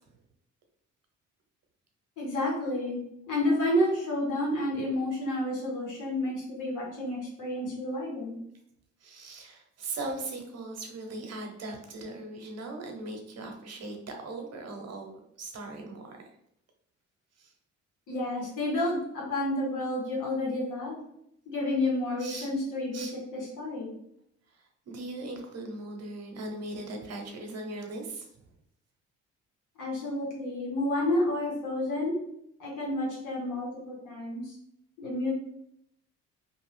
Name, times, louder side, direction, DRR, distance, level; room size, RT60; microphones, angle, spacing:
voice 1, 2.2-8.4 18.1-21.0 21.5-23.9 29.8-32.2 32.6-34.6 35.0-35.3, left 1 dB, 85° left, -3 dB, 1.3 m, -30 dB
voice 2, 9.0-16.2 17.4-17.5 22.2-22.5 22.9-23.1 24.5-28.3, right 2 dB, 55° right, 3 dB, 0.8 m, -39 dB
2.7 x 2.3 x 3.3 m, 0.74 s
cardioid pair, 90°, 30 cm